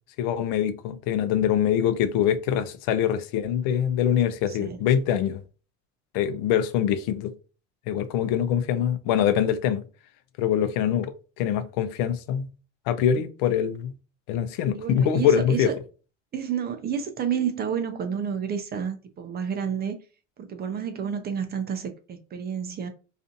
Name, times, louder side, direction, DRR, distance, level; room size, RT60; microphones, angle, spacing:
voice 1, 0.2-5.4 6.1-7.3 7.9-9.8 10.4-12.5 12.9-13.9 14.3-15.7, left 9 dB, 60° left, 0.5 m, -24 dB
voice 2, 4.5-4.8 14.7-15.7 16.3-20.0 20.4-22.9, right 7 dB, 25° right, 0.4 m, -30 dB
2.5 x 2.5 x 2.5 m
supercardioid pair, 95°, 38 cm